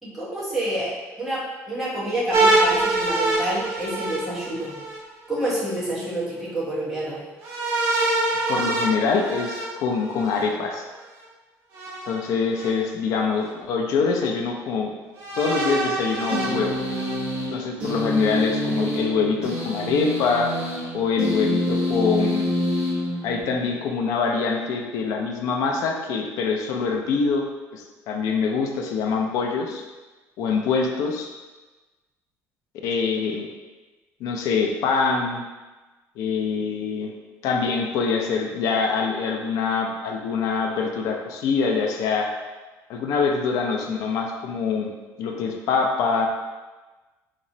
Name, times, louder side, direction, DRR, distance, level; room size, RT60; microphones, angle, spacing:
voice 1, 0.0-4.8 5.3-7.2, right 1 dB, 5° right, -9 dB, 1.0 m, -28 dB
sound 1, 2.3-5.0 7.4-10.4 11.7-12.7 13.4-13.5 15.2-17.2, right 2 dB, 70° right, 1.3 m, -25 dB
voice 2, 8.5-10.9 12.1-14.9 15.4-16.8 17.5-20.5 20.9-22.5 23.2-27.5 27.7-29.8 30.4-31.3 32.8-33.5 34.2-35.4 36.2-37.1 37.4-42.3 42.9-44.9 45.2-46.3, left 5 dB, 65° left, 2 dB, 0.5 m, -24 dB
sound 2, 16.3-23.7, equal, 20° right, 1.3 m, -27 dB
4.1 x 2.9 x 2.7 m, 1.2 s
cardioid pair, 155°, 6 cm